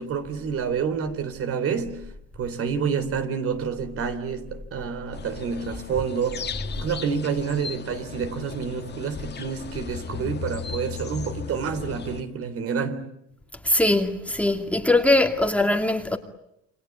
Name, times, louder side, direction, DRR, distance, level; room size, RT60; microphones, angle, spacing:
voice 1, 0.0-2.1 2.4-6.5 6.8-13.1, right 6 dB, 50° right, 3.6 m, -28 dB
sound 1, 5.1-12.2, left 7 dB, 35° left, 2.1 m, -36 dB
voice 2, 13.6-16.2, left 2 dB, 5° left, 2.4 m, -21 dB
29.0 x 23.5 x 8.6 m
supercardioid pair, 105°, 29 cm